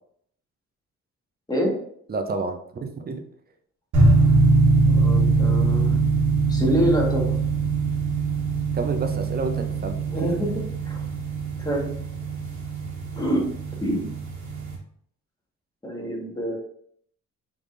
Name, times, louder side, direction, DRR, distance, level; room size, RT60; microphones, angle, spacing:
voice 1, 2.1-3.2 8.7-10.4, right 3 dB, 30° right, 5 dB, 0.7 m, -29 dB
sound 1, 3.9-14.7, right 3 dB, 70° right, 1.6 m, -22 dB
voice 2, 4.9-6.0 6.5-7.3 10.1-10.5 10.8-11.0 11.6-11.9 13.1-13.4 13.8-14.0 15.8-16.6, equal, 15° left, -2 dB, 1.6 m, -25 dB
5.0 x 3.6 x 2.6 m, 0.65 s
cardioid pair, 90°, 30 cm